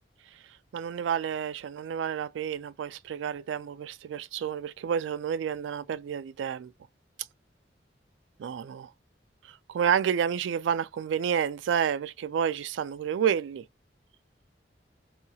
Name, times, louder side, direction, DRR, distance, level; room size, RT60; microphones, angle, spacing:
voice 1, 0.7-6.7 8.4-8.9 9.5-13.6, right 8 dB, 90° right, 0.3 m, -30 dB
2.8 x 2.3 x 2.6 m
head